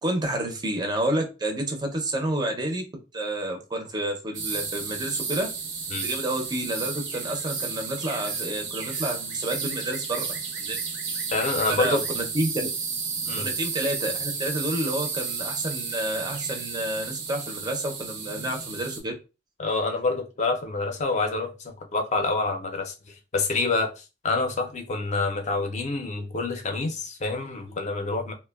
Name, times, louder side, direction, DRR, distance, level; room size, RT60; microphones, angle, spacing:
voice 1, 0.0-2.8 3.1-5.5 6.0-10.3 10.6-10.8 11.7-12.5 13.4-19.1, right 1 dB, 20° right, 4 dB, 0.5 m, -29 dB
sound 1, 4.3-19.0, right 5 dB, 75° right, 0.6 m, -32 dB
voice 2, 11.3-12.0 13.3-13.5 19.6-22.9 23.3-23.9 24.2-28.3, left 3 dB, 40° left, 4 dB, 0.5 m, -27 dB
3.1 x 2.1 x 2.2 m, 0.29 s
head